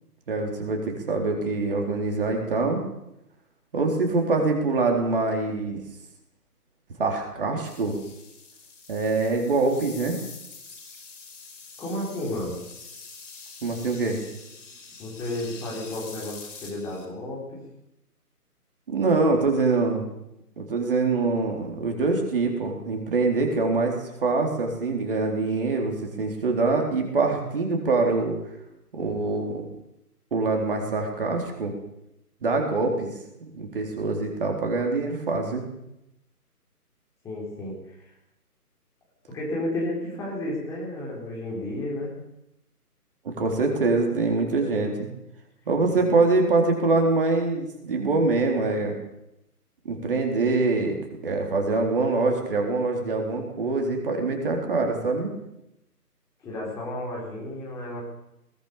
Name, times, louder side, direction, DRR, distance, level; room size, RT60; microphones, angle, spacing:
voice 1, 0.3-2.8 3.7-5.8 7.0-7.9 8.9-10.2 13.6-14.2 18.9-20.0 20.6-28.4 28.9-29.7 30.3-31.7 32.4-33.1 33.4-35.6 43.2-45.1 45.7-49.0 49.9-51.0 51.2-55.3, right 3 dB, 35° right, 2 dB, 3.8 m, -24 dB
sound 1, 7.6-17.0, left 4 dB, 50° left, 5.4 m, -45 dB
voice 2, 11.8-12.6 15.0-17.6 37.2-38.1 39.3-42.1 45.9-46.0 56.4-58.0, left 1 dB, 5° left, -5 dB, 3.9 m, -32 dB
21.5 x 18.5 x 6.9 m, 0.86 s
figure-of-eight pair, 155°, 47 cm